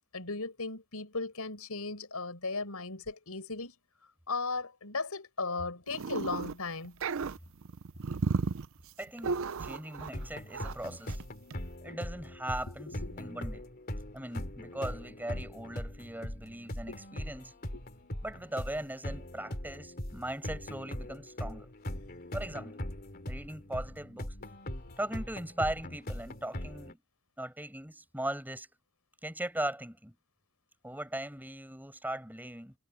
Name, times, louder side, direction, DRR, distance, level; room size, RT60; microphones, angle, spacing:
voice 1, 0.1-3.7 4.3-7.0 11.8-12.0 12.9-13.1 16.9-17.0 17.7-17.8 24.8-25.0, left 3 dB, 85° left, 5.0 m, -37 dB
sound 1, 5.9-6.5 6.8-10.3 10.5-10.8 11.1-11.3 11.5-11.6, right 4 dB, 65° right, 0.5 m, -34 dB
voice 2, 9.0-11.2 11.8-13.7 14.1-17.6 18.2-21.7 22.3-22.8 23.3-24.3 25.0-27.0 27.4-28.7 29.2-30.2 30.8-32.8, right 1 dB, 10° right, 7.4 m, -39 dB
sound 2, 10.1-26.9, left 1 dB, 45° left, 3.1 m, -41 dB
head